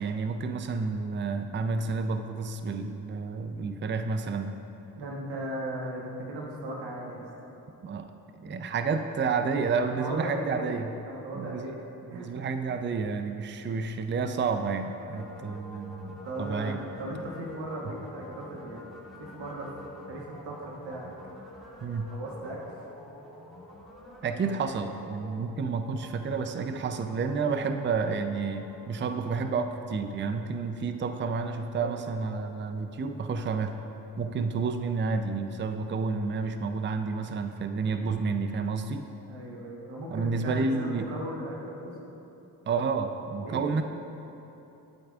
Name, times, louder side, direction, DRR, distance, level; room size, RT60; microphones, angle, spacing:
voice 1, 0.0-4.6 7.8-10.9 11.3-11.7 12.1-16.8 17.9-18.0 21.8-22.1 24.2-33.8 34.2-39.0 40.1-41.1 42.7-43.8, right 4 dB, 30° right, 8 dB, 0.5 m, -30 dB
voice 2, 5.0-7.5 9.8-10.7 11.1-11.8 12.1-12.3 16.2-19.7 20.0-21.1 22.1-22.8 31.7-32.0 39.3-41.9 43.4-43.8, right 1 dB, 90° right, -3 dB, 1.3 m, -37 dB
sound 1, 14.5-30.7, left 1 dB, ahead, 2.0 m, -48 dB
11.5 x 8.6 x 2.4 m, 3.0 s
supercardioid pair, 45°, 42 cm